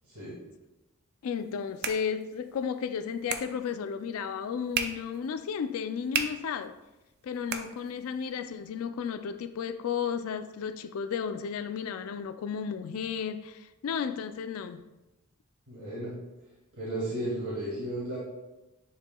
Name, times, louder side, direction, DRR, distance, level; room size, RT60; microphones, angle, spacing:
voice 1, 1.2-6.7 7.2-14.8, left 7 dB, 75° left, 0.3 m, -33 dB
sound 1, 1.3-8.3, right 6 dB, 50° right, 0.5 m, -39 dB
voice 2, 15.7-16.2 16.8-18.2, right 1 dB, 75° right, 2.1 m, -34 dB
9.7 x 4.7 x 2.3 m
head